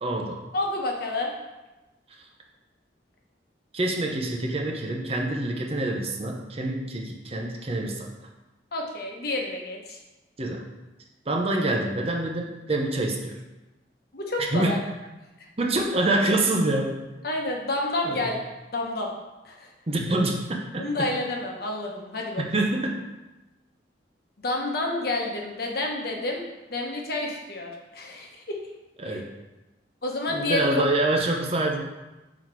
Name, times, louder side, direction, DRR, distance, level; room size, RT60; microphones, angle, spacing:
voice 1, 0.0-0.4 3.7-8.1 10.4-10.6 11.3-13.3 14.5-14.8 15.6-17.1 18.0-18.3 19.9-21.1 22.4-23.0 29.0-29.3 30.3-31.8, right 2 dB, 35° right, 1 dB, 0.7 m, -26 dB
voice 2, 0.5-1.3 8.7-10.0 14.1-14.8 17.2-18.4 18.7-19.1 19.4-19.7 20.8-22.4 24.4-26.4 26.7-28.6 29.0-29.2 30.0-30.8, left 2 dB, 60° left, 0 dB, 1.1 m, -29 dB
6.0 x 4.0 x 4.6 m, 1.0 s
head